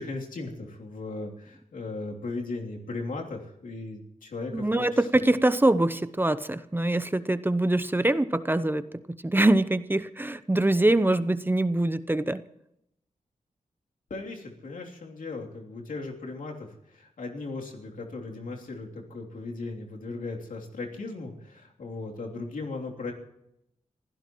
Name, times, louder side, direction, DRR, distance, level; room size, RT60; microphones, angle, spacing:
voice 1, 0.0-5.0 14.1-16.7 16.9-23.1, left 3 dB, 90° left, 0 dB, 3.1 m, -37 dB
voice 2, 4.5-12.4, right 1 dB, 15° right, 13 dB, 0.7 m, -24 dB
26.5 x 15.5 x 3.1 m, 0.81 s
wide cardioid pair, 85°, 14 cm